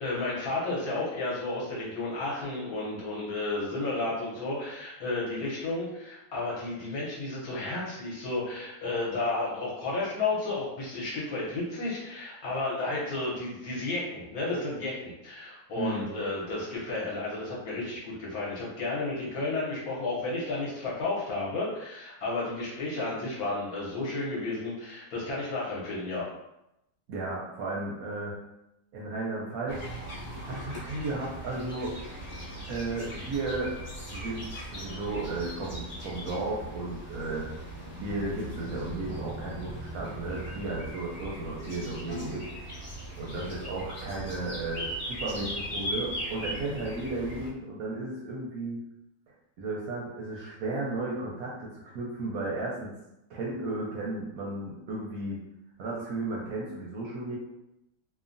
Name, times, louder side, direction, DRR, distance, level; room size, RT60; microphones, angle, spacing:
voice 1, 0.0-26.3, left 2 dB, 65° left, -5 dB, 1.1 m, -32 dB
voice 2, 15.8-16.2 27.1-28.3 28.9-29.8 30.4-31.9 32.7-33.7 34.1-37.5 38.0-42.4 43.2-48.8 49.6-52.9 53.3-55.4 55.8-57.4, right 2 dB, 70° right, -4 dB, 0.9 m, -34 dB
sound 1, 29.7-47.5, equal, 30° left, 0.8 m, -39 dB
3.0 x 2.1 x 2.5 m, 0.88 s
omnidirectional pair, 1.9 m